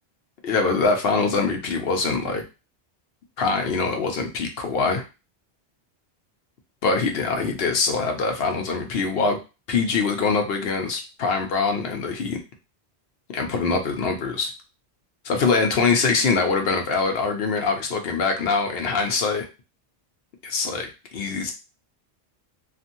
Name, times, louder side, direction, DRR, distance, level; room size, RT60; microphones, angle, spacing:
voice 1, 0.4-2.4 3.4-5.0 6.8-9.4 9.7-12.4 13.3-14.5 15.2-19.4 20.4-21.5, left 4 dB, 70° left, 4 dB, 0.9 m, -23 dB
2.8 x 2.5 x 2.6 m, 0.29 s
omnidirectional pair, 1.1 m